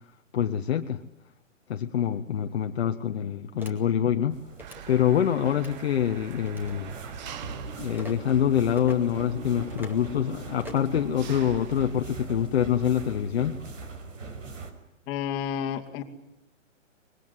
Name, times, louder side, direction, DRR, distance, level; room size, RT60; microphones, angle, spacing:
voice 1, 0.3-1.0 1.7-4.4 4.9-6.9 7.8-13.6, left 9 dB, 50° left, 1.4 m, -25 dB
sound 1, 3.6-3.7 4.5-4.8 5.5-5.8 6.4-6.8 7.9-8.1 8.8-9.0 9.7-10.0 10.6-10.9, left 1 dB, 5° right, 2.2 m, -42 dB
sound 2, 4.3-14.7, right 3 dB, 70° right, 5.3 m, -42 dB
Engine, 4.6-12.0, right 9 dB, 35° right, 1.3 m, -43 dB
voice 2, 15.1-16.0, left 9 dB, 25° left, 2.5 m, -30 dB
24.5 x 22.0 x 9.8 m
hypercardioid pair, 150°, 39 cm